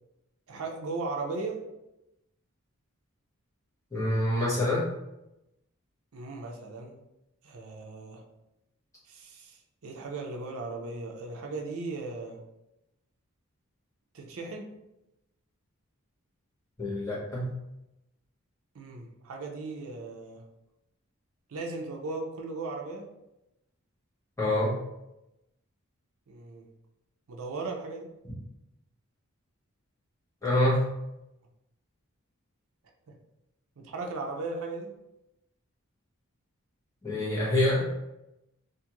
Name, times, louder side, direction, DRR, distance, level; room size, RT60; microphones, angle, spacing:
voice 1, 0.5-1.6 6.1-6.9 7.4-8.2 9.1-12.4 14.1-14.7 18.7-20.4 21.5-23.1 26.3-26.7 27.3-28.1 33.8-34.9, right 3 dB, 75° right, 1 dB, 0.5 m, -37 dB
voice 2, 3.9-4.9 16.8-17.5 24.4-24.7 30.4-30.8 37.0-37.8, left 1 dB, 15° left, -8 dB, 1.0 m, -26 dB
2.5 x 2.4 x 2.9 m, 0.92 s
head